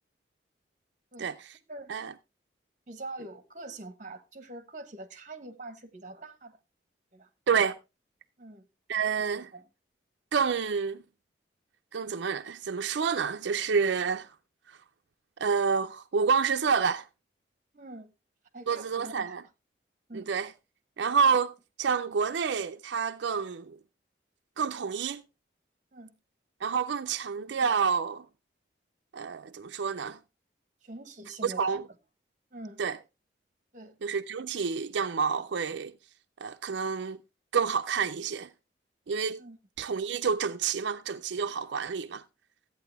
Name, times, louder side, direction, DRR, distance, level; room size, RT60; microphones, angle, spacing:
voice 1, 2.9-6.6 7.1-7.3 8.4-8.7 9.4-9.7 17.7-18.1 18.5-19.5 20.1-20.3 25.9-26.1 30.8-31.8 32.5-32.8 33.7-34.0 39.4-39.6, right 2 dB, 40° right, 1.3 m, -44 dB
voice 2, 7.5-7.8 8.9-9.5 10.3-11.0 11.9-14.3 15.4-17.1 18.7-19.4 20.1-20.5 21.0-23.8 24.6-25.2 26.6-28.3 29.1-30.2 31.4-31.8 32.8-33.0 34.0-35.9 36.4-37.2 37.5-38.5 39.1-39.4 39.8-42.2, right 6 dB, 80° right, 0.5 m, -28 dB
13.5 x 8.7 x 3.4 m
head